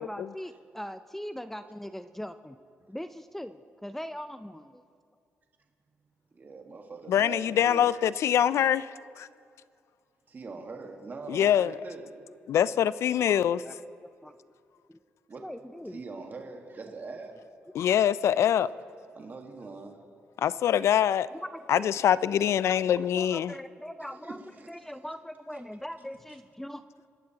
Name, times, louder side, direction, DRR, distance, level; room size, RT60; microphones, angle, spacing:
voice 1, 0.0-2.6 2.9-4.8 13.6-13.7 14.2-14.4 14.9-15.0 15.4-16.0 21.5-21.9 23.2-24.4 24.7-26.8, equal, 5° left, 11 dB, 0.4 m, -40 dB
voice 2, 6.3-7.9 10.3-12.3 15.3-15.5 15.9-17.4 19.1-20.0 24.2-24.7, right 3 dB, 40° right, 2 dB, 1.5 m, -42 dB
voice 3, 7.1-9.3 11.3-11.8 12.5-13.6 17.7-18.7 20.4-21.3 21.7-23.5, left 10 dB, 70° left, 18 dB, 0.3 m, -24 dB
25.5 x 12.0 x 2.9 m, 2.3 s
cardioid pair, 80°, 5 cm